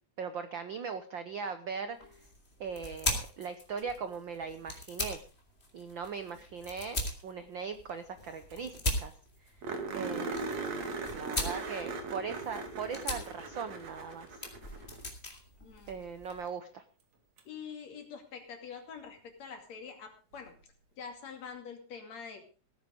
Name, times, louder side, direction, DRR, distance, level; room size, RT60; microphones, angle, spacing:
voice 1, 0.2-2.0 2.6-5.2 5.7-8.7 9.0-9.1 9.9-10.6 11.1-14.3 15.9-16.8, right 6 dB, 80° right, 10 dB, 1.0 m, -39 dB
sound 1, 1.9-16.5, left 1 dB, 20° left, 3.0 m, -40 dB
sound 2, 8.2-8.3 8.5-8.6 8.9-9.0 9.6-15.0 17.4-17.5 20.3-20.4, right 4 dB, 60° right, 3.4 m, -39 dB
voice 2, 15.6-15.9 17.5-20.5 21.0-22.4, left 6 dB, 60° left, 5 dB, 3.6 m, -45 dB
17.0 x 9.8 x 5.1 m, 0.37 s
omnidirectional pair, 3.5 m